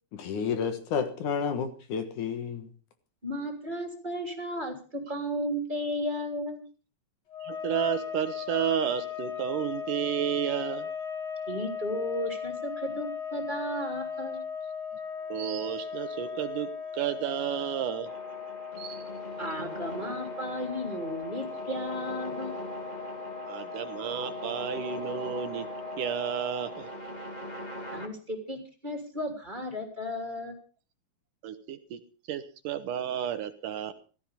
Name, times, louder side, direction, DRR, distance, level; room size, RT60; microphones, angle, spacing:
voice 1, 0.2-2.6, left 6 dB, 65° left, 9 dB, 2.8 m, -30 dB
voice 2, 3.2-6.6 11.5-14.4 19.4-22.6 27.9-30.6, equal, 15° right, 4 dB, 3.1 m, -34 dB
sound 1, 7.3-26.9, left 7 dB, 30° left, 2.6 m, -38 dB
voice 3, 7.4-10.9 15.3-18.1 18.8-19.0 23.4-25.7 26.0-26.9 31.4-32.0 32.3-33.9, right 9 dB, 75° right, 10 dB, 2.4 m, -32 dB
sound 2, 18.1-28.1, right 1 dB, 15° left, 1.8 m, -41 dB
16.0 x 13.5 x 5.2 m, 0.37 s
omnidirectional pair, 4.1 m